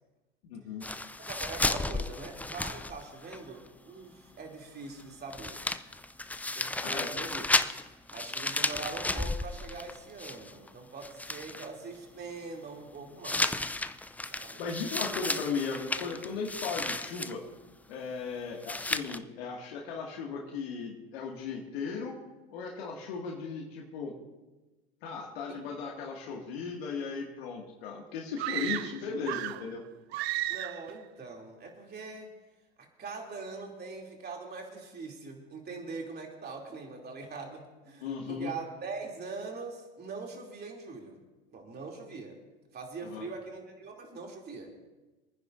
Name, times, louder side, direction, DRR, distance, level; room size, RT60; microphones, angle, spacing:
voice 1, 0.5-0.8 6.8-7.1 14.6-17.4 17.9-22.2 22.5-24.1 25.0-29.8 38.0-38.5 43.0-43.2, left 5 dB, 75° left, -1 dB, 2.2 m, -36 dB
sound 1, 0.8-3.4 3.7-3.8 5.0-5.1 5.3-10.7 11.0-11.7 13.2-17.3 18.6-19.2, left 2 dB, 5° left, 0.4 m, -33 dB
voice 2, 1.3-5.6 6.5-7.5 8.1-13.5 14.3-14.6 25.5-25.6 30.5-32.4 32.8-41.2 41.5-42.4 42.7-44.7, right 4 dB, 30° right, 1 dB, 3.0 m, -42 dB
sound 2, 28.4-29.7 30.1-30.9, right 15 dB, 80° right, 0.5 m, -34 dB
27.0 x 9.8 x 2.6 m, 1.1 s
hypercardioid pair, 90°, 31 cm